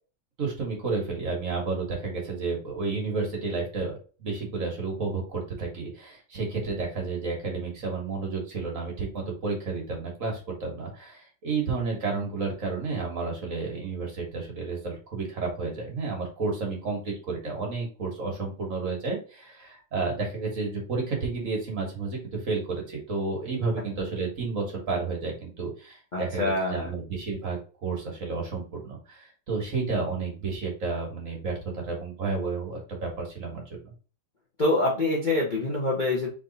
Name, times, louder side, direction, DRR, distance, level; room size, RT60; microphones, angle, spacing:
voice 1, 0.4-33.9, right 4 dB, 40° right, -1 dB, 1.5 m, -31 dB
voice 2, 26.1-26.9 34.6-36.3, left 2 dB, 85° left, -3 dB, 0.4 m, -25 dB
3.6 x 3.4 x 3.9 m, 0.37 s
omnidirectional pair, 2.4 m